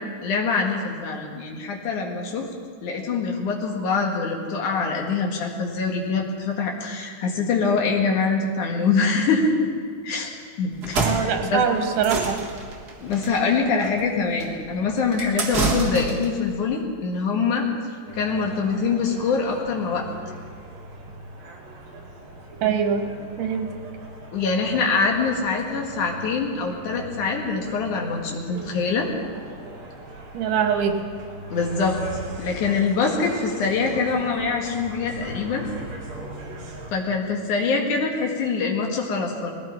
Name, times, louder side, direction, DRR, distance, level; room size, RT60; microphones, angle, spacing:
voice 1, 0.2-2.5 2.8-9.7 10.0-11.6 13.0-17.7 18.1-20.0 24.3-29.1 31.5-32.0 32.4-35.7 36.9-39.5, left 4 dB, 70° left, 0 dB, 3.2 m, -24 dB
sound 1, 10.7-16.4, right 3 dB, 40° right, 1.5 m, -28 dB
voice 2, 11.0-12.4 22.6-23.1 23.4-23.8 30.3-31.0, right 7 dB, 85° right, 5 dB, 3.0 m, -23 dB
sound 2, 18.1-36.9, right 1 dB, 60° right, 3.5 m, -40 dB
19.5 x 15.5 x 4.5 m, 2.1 s
omnidirectional pair, 3.6 m